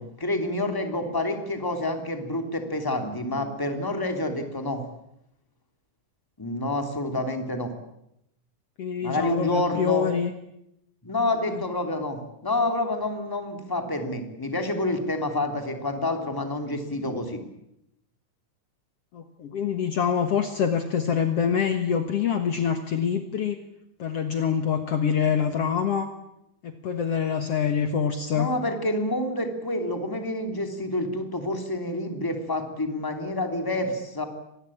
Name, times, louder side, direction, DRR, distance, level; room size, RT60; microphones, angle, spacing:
voice 1, 0.0-4.8 6.4-7.7 9.0-10.1 11.0-17.4 28.3-34.2, left 1 dB, 5° left, 5 dB, 2.9 m, -28 dB
voice 2, 8.8-10.3 11.5-11.6 19.1-23.6 24.0-26.1 26.6-28.5, left 7 dB, 55° left, 7 dB, 2.2 m, -25 dB
25.5 x 20.5 x 8.8 m, 0.81 s
omnidirectional pair, 3.6 m